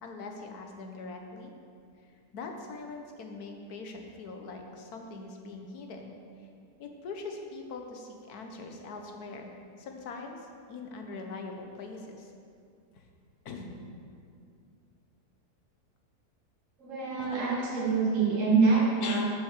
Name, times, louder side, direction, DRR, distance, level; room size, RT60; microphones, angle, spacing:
voice 1, 0.0-1.5 2.3-6.2 6.8-10.4 10.7-12.3 12.9-13.0 13.4-13.7 17.2-17.4 19.0-19.2, left 3 dB, 75° left, 3 dB, 1.5 m, -42 dB
voice 2, 16.8-19.2, right 4 dB, 55° right, -5 dB, 2.1 m, -25 dB
7.4 x 6.9 x 6.6 m, 2.3 s
omnidirectional pair, 1.7 m